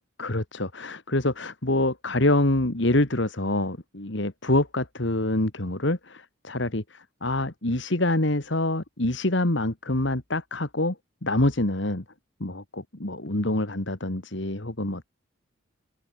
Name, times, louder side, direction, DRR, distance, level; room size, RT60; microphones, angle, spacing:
voice 1, 0.2-11.0 11.2-12.0 12.4-15.1, left 1 dB, 60° left, 2.1 m, -26 dB
open air
head